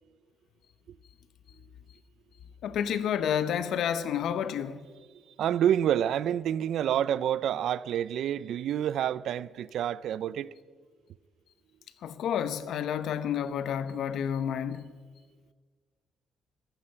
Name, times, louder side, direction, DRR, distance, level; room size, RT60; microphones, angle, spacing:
voice 1, 2.6-4.8 12.0-14.8, left 9 dB, 75° left, 0.8 m, -30 dB
voice 2, 5.4-10.5, right 10 dB, 75° right, 0.4 m, -28 dB
15.0 x 14.0 x 5.7 m
cardioid pair, 90°, 0 cm